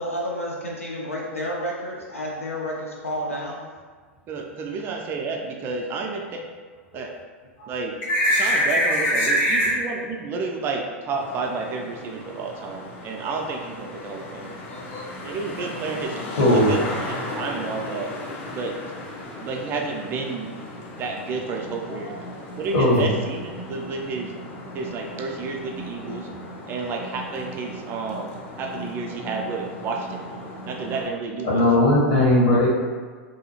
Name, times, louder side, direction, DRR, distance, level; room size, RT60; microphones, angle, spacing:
voice 1, 0.0-3.6, equal, 85° left, -2 dB, 0.4 m, -30 dB
voice 2, 4.3-6.4 6.9-7.1 7.7-8.0 8.3-14.5 15.2-18.1 18.5-18.8 19.4-20.5 21.0-22.1 22.6-24.3 24.7-26.3 26.7-28.3 28.6-30.3 30.6-31.6, right 4 dB, 30° right, 1 dB, 0.3 m, -31 dB
voice 3, 8.1-9.7 14.7-15.1 16.4-16.8 22.0-22.1 22.7-23.1 31.4-32.7, left 1 dB, 50° left, -6 dB, 1.1 m, -19 dB
Traffic noise roadway noise, 11.1-31.1, left 1 dB, 35° left, 0.5 m, -37 dB
2.7 x 2.3 x 2.8 m, 1.5 s
figure-of-eight pair, 90°, 7 cm